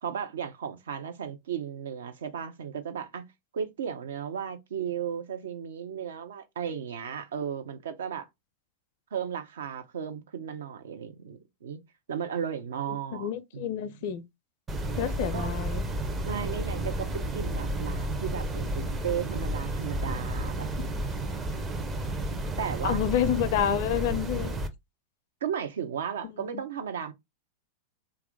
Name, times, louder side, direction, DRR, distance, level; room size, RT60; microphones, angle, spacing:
voice 1, 0.0-3.2 3.5-8.3 9.1-11.8 12.1-13.9 15.3-15.5 16.2-20.7 22.6-23.0 25.4-27.1, right 8 dB, 65° right, 0.6 m, -35 dB
voice 2, 12.9-14.2 14.9-15.9 22.8-24.5 26.5-26.6, left 10 dB, 50° left, 0.5 m, -29 dB
sound 1, 14.7-24.7, right 1 dB, 20° right, 0.5 m, -32 dB
3.0 x 2.3 x 3.5 m
figure-of-eight pair, 90°, 0 cm